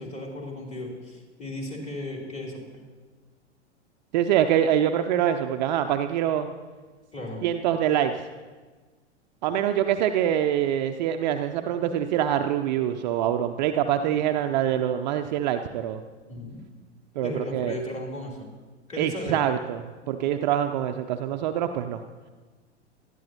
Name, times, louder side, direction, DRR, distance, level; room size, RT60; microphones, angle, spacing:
voice 1, 0.0-2.6 7.1-7.4 16.3-16.6 17.2-18.4 18.9-19.4, left 1 dB, 20° left, -1 dB, 3.2 m, -35 dB
voice 2, 4.1-6.5 7.4-8.2 9.4-16.0 17.2-17.8 19.0-22.0, right 10 dB, 40° right, 7 dB, 0.5 m, -25 dB
19.0 x 13.0 x 2.9 m, 1.4 s
figure-of-eight pair, 95°, 35 cm